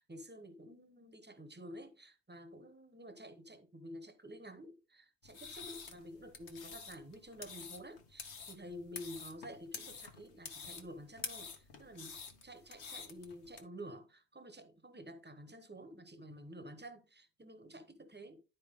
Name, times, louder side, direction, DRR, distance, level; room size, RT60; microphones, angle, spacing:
voice 1, 0.0-18.4, equal, 10° right, 1.0 m, -50 dB
sound 1, 5.2-13.6, left 5 dB, 85° left, 1.5 m, -48 dB
11.5 x 4.6 x 3.6 m
omnidirectional pair, 1.1 m